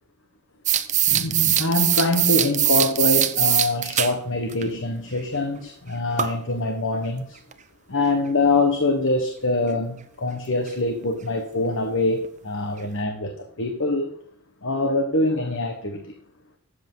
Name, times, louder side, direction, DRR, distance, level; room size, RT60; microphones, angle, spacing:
sound 1, 0.7-4.1 4.5-4.6 6.2-6.4 7.5-7.6 10.7-10.8 11.0-11.1 11.7-11.8 12.2-12.3 12.8-12.9, right 11 dB, 35° right, 0.7 m, -21 dB
voice 1, 1.1-7.4 7.9-14.1 14.6-16.1, left 2 dB, 60° left, 5 dB, 1.3 m, -24 dB
13.0 x 7.9 x 3.9 m, 0.64 s
head